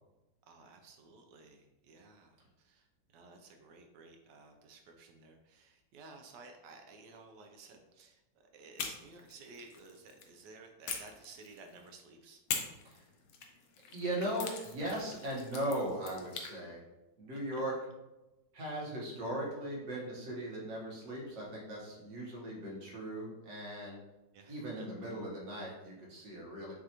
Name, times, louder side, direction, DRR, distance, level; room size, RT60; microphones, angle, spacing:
voice 1, 0.5-8.2 8.5-12.4 17.3-17.6 24.3-24.9, right 3 dB, 75° right, 4 dB, 1.1 m, -55 dB
sound 1, 8.8-10.3 10.9-11.9 12.5-16.5, left 6 dB, 70° left, 0.8 m, -43 dB
voice 2, 13.9-16.8 17.2-17.7 18.5-24.0 24.5-26.7, right 1 dB, 45° right, -3 dB, 1.3 m, -38 dB
6.4 x 2.4 x 2.9 m, 1.0 s
omnidirectional pair, 2.0 m